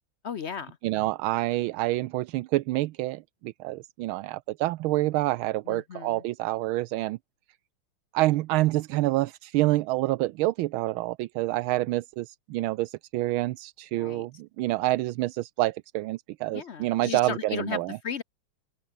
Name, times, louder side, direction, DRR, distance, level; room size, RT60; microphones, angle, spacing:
voice 1, 0.2-0.8 5.7-6.2 14.0-14.3 16.5-18.2, left 7 dB, 70° left, 0.6 m, -35 dB
voice 2, 0.8-7.2 8.1-18.0, right 18 dB, 80° right, 1.4 m, -27 dB
open air
omnidirectional pair, 2.3 m